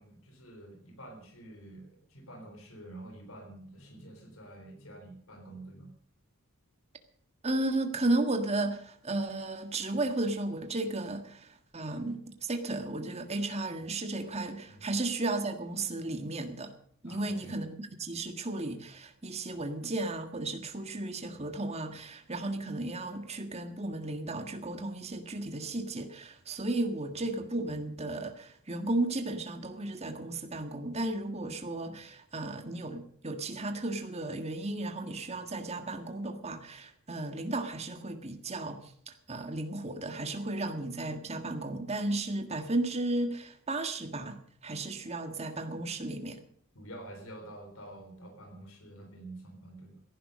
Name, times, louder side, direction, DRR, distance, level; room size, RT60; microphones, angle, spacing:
voice 1, 0.0-5.9 14.7-15.0 17.0-17.6 46.7-50.0, right 1 dB, 70° left, 5 dB, 3.7 m, -48 dB
voice 2, 7.4-16.7 17.0-38.8 39.1-44.4 44.6-46.4, right 2 dB, 30° right, 6 dB, 1.7 m, -34 dB
16.0 x 11.0 x 6.5 m, 0.62 s
head